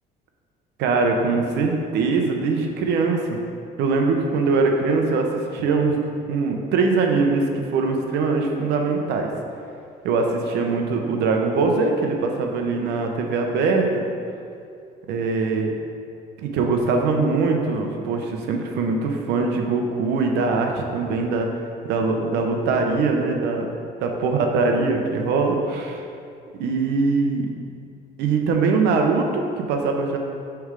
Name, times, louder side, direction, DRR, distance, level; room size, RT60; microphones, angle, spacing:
voice 1, 0.8-3.4 3.8-5.3 5.5-9.3 10.0-14.0 15.1-15.7 16.4-21.5 21.8-23.7 24.0-26.0 26.5-27.5 28.2-30.2, right 4 dB, 85° right, 2 dB, 0.8 m, -22 dB
6.6 x 3.5 x 5.1 m, 2.4 s
cardioid pair, 110°, 17 cm